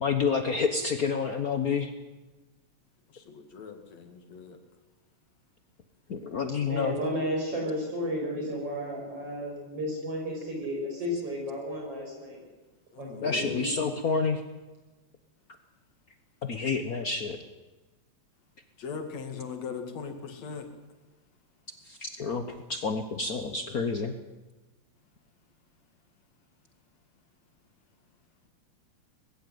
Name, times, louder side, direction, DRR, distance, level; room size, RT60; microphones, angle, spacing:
voice 1, 0.0-1.9 6.1-6.9 13.2-14.4 16.4-17.4 22.0-22.4 22.7-24.1, left 5 dB, 85° left, 8 dB, 0.8 m, -28 dB
voice 2, 3.1-4.6 12.9-13.7 18.8-20.7 23.6-23.7, left 6 dB, 65° left, 7 dB, 3.2 m, -39 dB
voice 3, 6.7-12.4 13.0-13.7, equal, 50° right, 0 dB, 7.1 m, -33 dB
20.0 x 15.5 x 9.3 m, 1.2 s
omnidirectional pair, 3.3 m